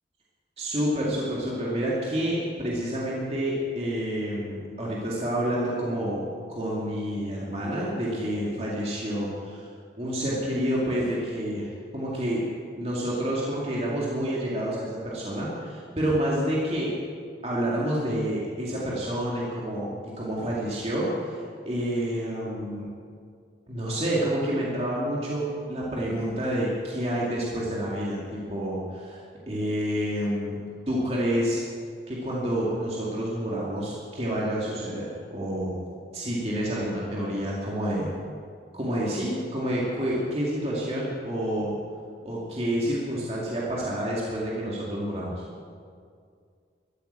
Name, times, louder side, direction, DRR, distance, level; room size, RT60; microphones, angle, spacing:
voice 1, 0.6-6.2 6.5-9.7 10.0-12.5 12.7-16.9 17.4-19.9 20.2-22.9 23.7-30.6 30.9-31.6 32.1-35.8 36.1-38.1 38.7-41.8 42.2-45.3, equal, 35° right, -5 dB, 2.4 m, -28 dB
13.5 x 9.0 x 8.9 m, 2.2 s
head